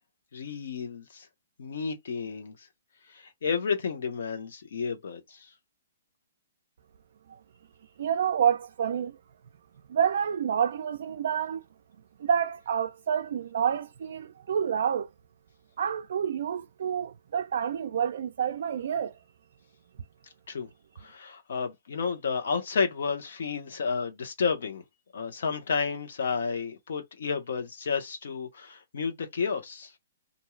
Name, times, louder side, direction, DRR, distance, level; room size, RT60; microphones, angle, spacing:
voice 1, 0.3-1.3 1.6-2.5 3.1-5.4 20.5-20.7 21.0-24.8 25.1-29.9, left 5 dB, 70° left, 1.0 m, -31 dB
voice 2, 8.0-9.2 9.9-11.6 12.2-15.1 15.8-19.1, right 8 dB, 60° right, 0.3 m, -28 dB
2.6 x 2.3 x 3.1 m
hypercardioid pair, 165°, 0 cm